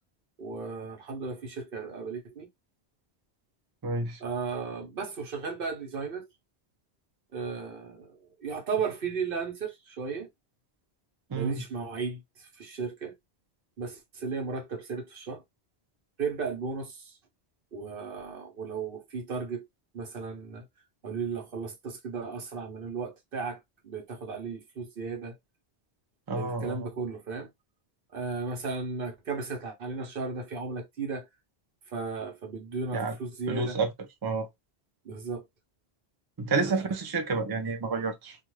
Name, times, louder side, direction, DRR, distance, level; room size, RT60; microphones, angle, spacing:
voice 1, 0.4-2.5 4.2-6.3 7.3-10.3 11.3-13.1 13.8-15.4 16.2-17.2 17.7-19.7 19.9-20.7 21.0-25.4 26.3-27.5 28.1-31.3 31.9-33.8 35.0-35.4 36.6-36.8, right 4 dB, 60° right, 1.0 m, -35 dB
voice 2, 3.8-4.2 11.3-11.6 26.3-26.9 32.9-33.1 33.5-33.9 34.2-34.5 36.4-38.4, right 4 dB, 35° right, 0.4 m, -29 dB
2.4 x 2.3 x 3.0 m
omnidirectional pair, 1.1 m